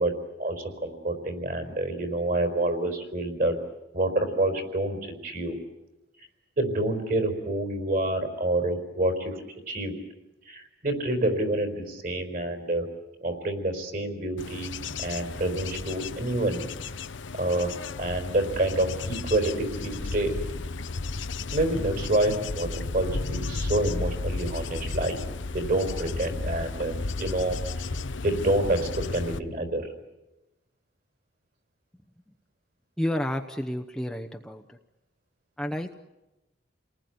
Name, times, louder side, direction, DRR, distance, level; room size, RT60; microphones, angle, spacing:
voice 1, 0.0-3.6 3.9-5.6 6.6-9.9 10.4-12.9 13.2-16.6 17.3-17.7 18.0-20.3 21.5-25.2 25.5-28.0 28.2-29.9, right 1 dB, 45° right, 6 dB, 4.5 m, -28 dB
Bird / Insect / Wind, 14.4-29.4, left 3 dB, 85° left, 0.9 m, -34 dB
voice 2, 33.0-34.6 35.6-35.9, left 1 dB, 5° left, 3 dB, 0.9 m, -30 dB
29.5 x 19.5 x 9.5 m, 1.0 s
head